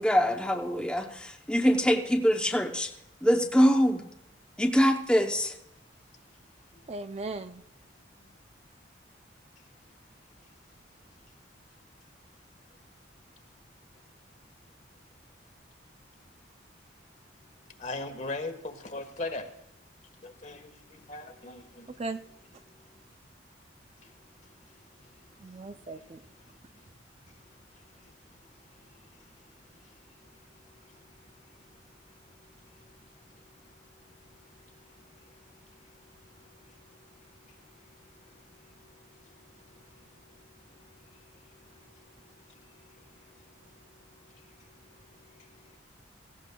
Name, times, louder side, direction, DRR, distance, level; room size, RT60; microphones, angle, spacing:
voice 1, 0.0-2.9 3.2-4.0 4.6-5.6, equal, 5° left, 0.7 m, -24 dB
voice 2, 6.9-7.6 21.9-22.2 25.4-26.2, right 3 dB, 35° right, 0.4 m, -37 dB
voice 3, 17.8-19.5 20.2-21.9 22.8-23.0 24.0-24.1 24.4-25.7 26.5-26.9 27.3-27.6 27.9-28.1 28.4-28.5 28.8-44.7 45.0-45.8, left 2 dB, 40° left, 1.3 m, -46 dB
17.5 x 16.0 x 2.2 m
head